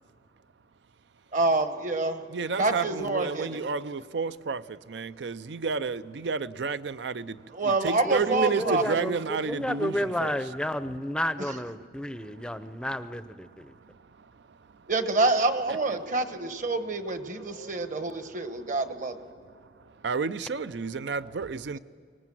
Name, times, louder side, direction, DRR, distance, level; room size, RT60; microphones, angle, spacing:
voice 1, 1.3-2.2 2.6-3.6 7.5-9.0 14.9-19.2, right 3 dB, 45° right, 1.2 m, -27 dB
voice 2, 2.3-10.4 12.2-12.5 13.5-14.9 15.7-15.8 18.2-18.4 20.0-21.8, right 5 dB, 80° right, 0.5 m, -32 dB
voice 3, 8.0-9.2 9.4-13.7, equal, 5° left, 0.5 m, -31 dB
24.5 x 19.0 x 7.6 m
head